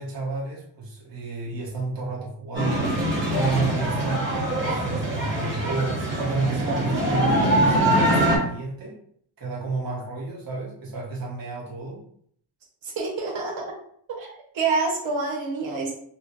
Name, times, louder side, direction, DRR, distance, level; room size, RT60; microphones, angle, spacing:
voice 1, 0.0-3.0 3.3-9.0 9.4-12.0, right 3 dB, 50° right, -4 dB, 1.1 m, -31 dB
sound 1, 2.5-8.4, right 1 dB, 25° right, 1.3 m, -23 dB
voice 2, 12.8-13.6 14.1-15.9, right 3 dB, 85° right, -3 dB, 1.0 m, -27 dB
4.2 x 2.1 x 3.0 m, 0.63 s
wide cardioid pair, 145°, 45 cm